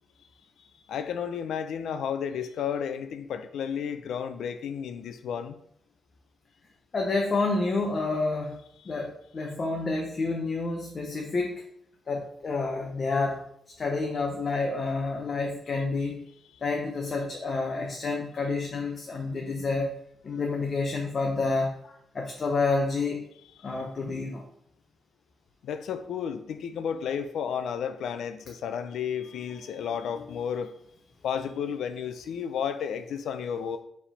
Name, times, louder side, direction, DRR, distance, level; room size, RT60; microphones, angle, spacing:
voice 1, 0.9-5.6 25.6-30.7 31.2-33.8, left 7 dB, 90° left, 0.5 m, -32 dB
voice 2, 6.9-8.6 8.9-11.6 12.1-13.4 13.8-16.2 16.6-19.9 20.2-23.3 23.6-24.5 30.2-30.4, left 3 dB, 40° left, 0.7 m, -29 dB
4.8 x 3.5 x 5.6 m
wide cardioid pair, 145°, 0 cm